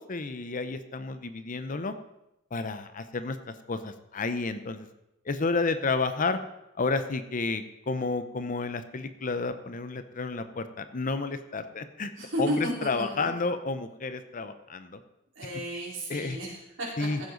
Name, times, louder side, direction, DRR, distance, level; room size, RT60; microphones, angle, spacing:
voice 1, 0.0-1.9 2.5-4.9 5.3-6.4 6.8-12.1 12.4-15.0 16.1-16.4 17.0-17.2, left 3 dB, 45° left, 11 dB, 0.7 m, -31 dB
voice 2, 12.2-13.3 15.4-17.1, equal, 70° right, -4 dB, 4.2 m, -33 dB
15.0 x 7.9 x 3.9 m, 0.89 s
head